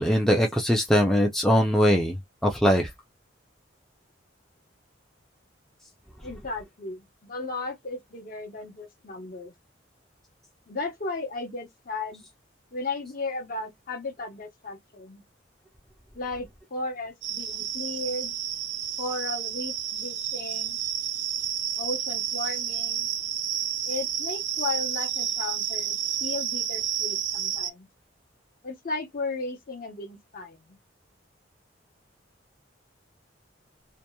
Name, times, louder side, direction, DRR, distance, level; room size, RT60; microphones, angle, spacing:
voice 1, 0.0-2.1 2.4-2.9, equal, ahead, 0.4 m, -21 dB
voice 2, 6.2-9.5 10.7-12.2 12.7-15.2 16.1-18.3 19.0-20.8 21.8-23.1 23.8-27.9 28.6-30.8, left 3 dB, 50° left, 0.8 m, -35 dB
sound 1, 17.2-27.7, right 10 dB, 65° right, 0.4 m, -30 dB
2.8 x 2.1 x 2.2 m
head